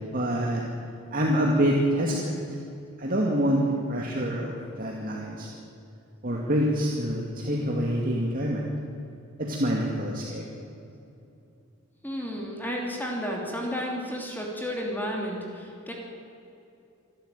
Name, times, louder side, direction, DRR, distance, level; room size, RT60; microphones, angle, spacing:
voice 1, 0.1-0.6 1.1-2.4 3.0-3.6 3.9-5.5 6.2-8.6 9.4-10.4, equal, 45° right, -1 dB, 2.3 m, -26 dB
voice 2, 12.0-15.9, equal, 10° left, -1 dB, 2.9 m, -32 dB
26.5 x 12.0 x 9.2 m, 2.7 s
head